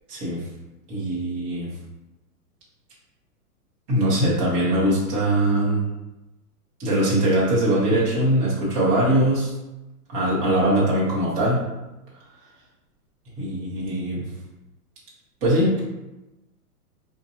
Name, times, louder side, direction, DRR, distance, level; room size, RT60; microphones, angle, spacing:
voice 1, 0.1-0.4 0.9-1.7 3.9-5.9 6.8-9.5 10.1-11.6 13.4-14.2 15.4-15.8, right 1 dB, 15° right, -7 dB, 0.6 m, -21 dB
4.3 x 2.7 x 2.7 m, 1.0 s
hypercardioid pair, 165°, 46 cm